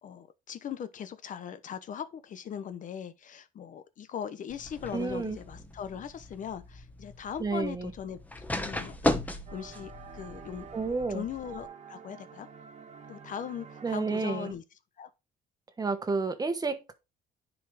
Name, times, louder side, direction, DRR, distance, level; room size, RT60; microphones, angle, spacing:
voice 1, 0.0-8.2 8.6-12.5 13.1-14.6 15.0-15.1, left 8 dB, 50° left, 0.8 m, -40 dB
sound 1, 4.5-11.7, left 1 dB, 10° left, 1.2 m, -36 dB
voice 2, 4.9-5.4 7.4-7.9 10.7-11.2 13.8-14.5 15.8-16.9, right 4 dB, 20° right, 1.3 m, -30 dB
sound 2, 9.5-14.5, right 6 dB, 40° right, 1.6 m, -48 dB
10.0 x 4.8 x 3.4 m
cardioid pair, 110°, 17 cm